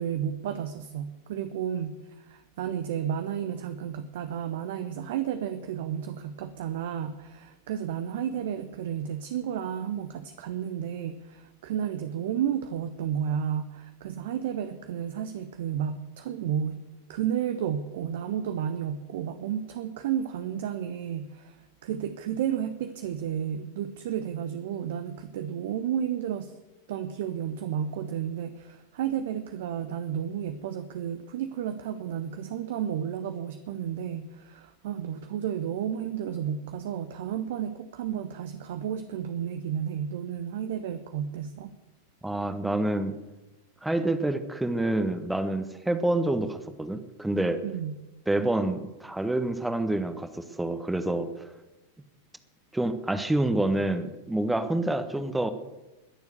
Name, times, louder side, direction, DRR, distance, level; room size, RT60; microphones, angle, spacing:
voice 1, 0.0-16.8 17.1-26.6 26.9-41.7 47.6-48.0, right 9 dB, 55° right, 10 dB, 0.9 m, -32 dB
voice 2, 42.2-43.1 43.8-47.6 48.3-51.5 52.7-55.5, right 1 dB, 5° right, 10 dB, 1.2 m, -27 dB
21.5 x 7.1 x 8.2 m, 1.1 s
figure-of-eight pair, 90°, 0 cm